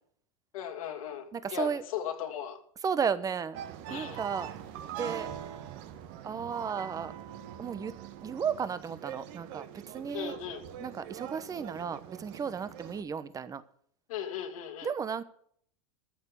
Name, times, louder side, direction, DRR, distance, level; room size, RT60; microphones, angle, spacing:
voice 1, 0.5-2.6 3.9-4.2 10.1-10.7 14.1-14.9, left 9 dB, 80° left, 2.8 m, -37 dB
voice 2, 1.3-1.8 2.8-3.6 3.9-4.5 5.0-5.3 6.2-7.1 7.6-7.9 8.2-10.3 10.8-13.6 14.8-15.2, right 6 dB, 20° right, 1.0 m, -34 dB
San Telmo market in Buenos Aires, 3.5-13.0, right 10 dB, 55° right, 1.6 m, -43 dB
14.0 x 6.7 x 8.3 m
supercardioid pair, 125°, 18 cm